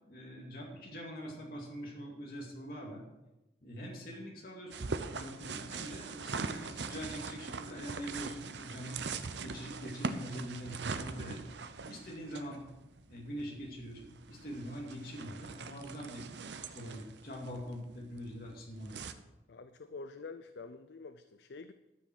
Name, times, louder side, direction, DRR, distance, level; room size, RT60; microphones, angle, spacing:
voice 1, 0.1-3.0 3.6-9.0 9.4-11.4 11.9-12.6 13.1-16.3 16.7-19.0, equal, 50° left, -2 dB, 2.3 m, -44 dB
sound 1, 4.7-19.1, right 4 dB, 75° right, 0.7 m, -42 dB
voice 2, 19.5-21.7, left 4 dB, 75° left, 10 dB, 0.5 m, -47 dB
13.0 x 7.2 x 6.1 m, 0.96 s
head